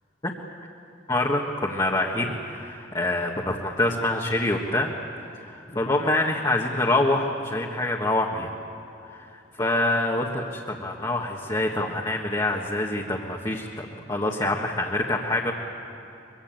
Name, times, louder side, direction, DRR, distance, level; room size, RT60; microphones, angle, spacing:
voice 1, 1.1-4.9 5.4-8.5 9.1-9.3 9.6-15.5, left 2 dB, 25° left, -2 dB, 1.5 m, -26 dB
23.5 x 23.0 x 8.9 m, 3.0 s
head